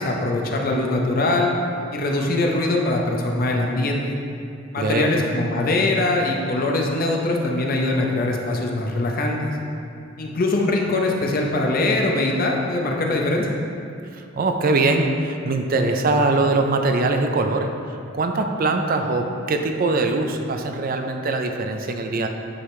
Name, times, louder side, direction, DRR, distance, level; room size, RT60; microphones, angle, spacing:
voice 1, 0.0-1.5 1.9-4.0 4.7-9.5 10.2-13.5, left 2 dB, 50° left, 0 dB, 0.7 m, -22 dB
voice 2, 4.8-5.1 14.1-22.3, right 3 dB, 50° right, 5 dB, 0.5 m, -22 dB
9.7 x 4.9 x 3.2 m, 2.4 s
head